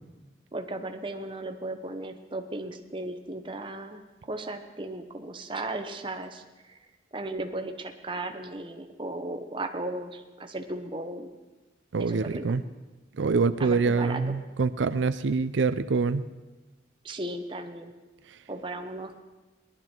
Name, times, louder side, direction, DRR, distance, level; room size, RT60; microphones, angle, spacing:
voice 1, 0.5-6.8 7.1-11.3 12.0-12.4 13.6-14.4 17.0-17.9 18.5-19.2, right 2 dB, 25° right, 5 dB, 0.9 m, -36 dB
voice 2, 11.9-12.6 13.2-16.3, right 4 dB, 90° right, 12 dB, 0.5 m, -25 dB
19.0 x 11.5 x 4.5 m, 1.2 s
head